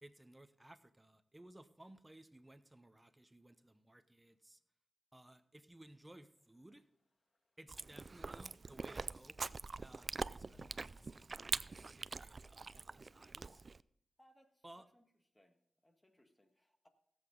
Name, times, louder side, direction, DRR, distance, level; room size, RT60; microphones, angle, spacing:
voice 1, 0.0-4.6 5.1-6.8 7.6-9.4 9.8-13.7 14.6-14.9, right 1 dB, 15° right, 12 dB, 0.9 m, -60 dB
sound 1, 5.8-11.0, left 4 dB, 40° left, 2.8 m, -75 dB
Chewing mastication, 7.7-13.8, right 4 dB, 50° right, 0.3 m, -44 dB
voice 2, 14.2-15.0 15.3-16.9, equal, 15° left, 6 dB, 1.8 m, -70 dB
17.0 x 8.0 x 3.9 m, 0.73 s
cardioid pair, 55°, 0 cm